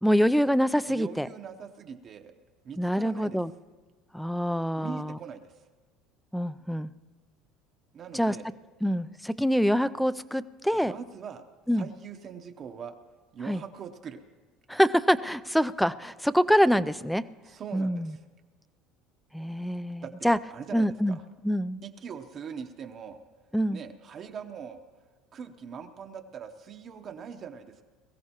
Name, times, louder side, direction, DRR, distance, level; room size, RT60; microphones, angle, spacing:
voice 1, 0.0-1.3 2.8-3.5 4.1-5.2 6.3-6.9 8.1-8.4 8.8-10.9 11.7-11.9 13.5-13.6 14.7-17.2 17.7-18.2 19.3-20.4 20.7-21.2 21.4-21.8 23.5-23.8, equal, ahead, 16 dB, 0.3 m, -25 dB
voice 2, 0.9-2.3 2.6-3.4 4.8-5.6 7.9-8.5 10.7-11.4 11.7-12.9 13.3-14.2 17.4-18.2 20.0-21.2 21.8-23.2 23.7-24.8 25.3-27.8, right 7 dB, 35° right, 5 dB, 0.8 m, -42 dB
22.0 x 15.0 x 2.9 m, 1.3 s
cardioid pair, 140°, 0 cm